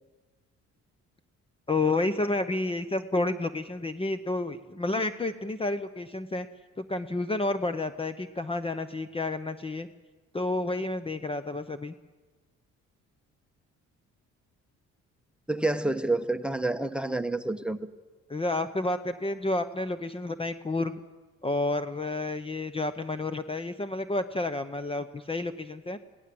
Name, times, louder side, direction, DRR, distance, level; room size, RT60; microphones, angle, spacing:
voice 1, 1.7-6.5 6.8-9.9 10.3-11.9 18.3-20.9 21.4-26.0, left 2 dB, 20° left, 11 dB, 0.8 m, -30 dB
voice 2, 15.5-17.8, right 2 dB, 5° right, 12 dB, 1.0 m, -28 dB
22.0 x 17.5 x 7.7 m, 1.3 s
cardioid pair, 90°, 30 cm